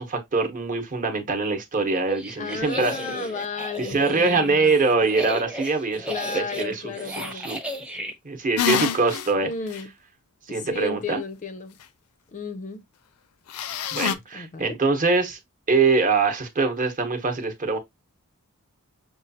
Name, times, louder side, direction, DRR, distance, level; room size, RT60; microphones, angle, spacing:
voice 1, 0.0-3.0 3.8-7.6 8.2-9.5 10.5-11.2 13.9-15.4 15.7-17.8, right 4 dB, 40° right, 0.9 m, -23 dB
sound 1, 1.9-8.1, right 2 dB, 5° right, 0.7 m, -34 dB
voice 2, 2.3-4.7 6.1-7.5 9.4-9.9 10.5-11.8 12.3-12.8 14.3-14.8, left 4 dB, 35° left, 0.4 m, -33 dB
sound 2, 8.6-9.3 9.7-9.8 13.5-14.1, left 8 dB, 90° left, 0.5 m, -25 dB
6.2 x 2.3 x 2.7 m
head